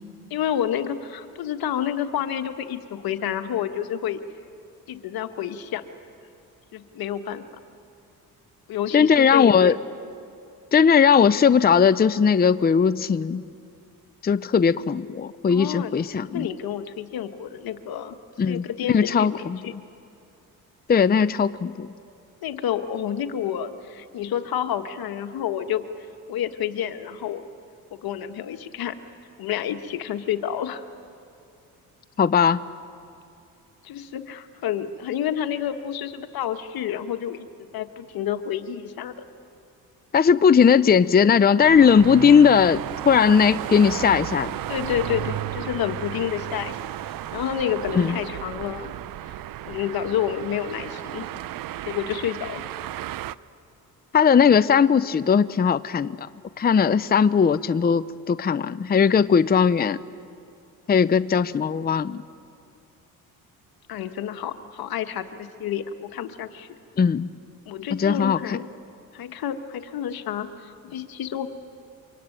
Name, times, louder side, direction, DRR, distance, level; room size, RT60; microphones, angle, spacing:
voice 1, 0.3-4.2 4.9-5.8 6.7-7.4 8.7-9.7 15.5-15.9 16.2-18.1 18.5-19.7 22.4-25.8 26.3-27.4 27.9-29.0 29.4-30.8 33.8-37.5 37.7-39.3 44.7-46.8 47.1-49.0 49.7-51.3 51.8-52.6 63.9-66.8 67.6-68.7 69.1-71.5, left 9 dB, 75° left, 9 dB, 1.5 m, -29 dB
voice 2, 8.9-9.8 10.7-13.4 14.2-16.5 18.4-19.6 20.9-21.9 32.2-32.6 40.1-44.5 47.9-48.2 54.1-56.3 56.6-60.0 60.9-62.2 67.0-67.3 67.9-68.6, left 6 dB, 25° left, 15 dB, 0.6 m, -18 dB
sound 1, 41.6-53.3, right 13 dB, 65° right, 0.7 m, -34 dB
24.0 x 24.0 x 9.2 m, 2.5 s
supercardioid pair, 75°, 37 cm